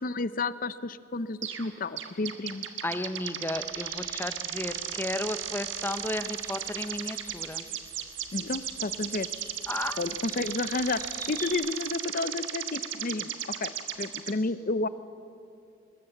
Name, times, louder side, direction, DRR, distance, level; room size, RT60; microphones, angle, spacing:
voice 1, 0.0-2.7 8.3-9.3 10.0-13.7 14.0-14.9, left 3 dB, 45° left, 15 dB, 0.7 m, -31 dB
sound 1, 1.4-1.7 2.0-14.3, right 10 dB, 70° right, 1.5 m, -36 dB
voice 2, 2.8-7.6 9.7-10.0, left 1 dB, 10° left, 11 dB, 0.8 m, -33 dB
sound 2, 3.5-11.5, right 2 dB, 20° right, 3.7 m, -48 dB
21.5 x 20.5 x 7.9 m, 2.6 s
head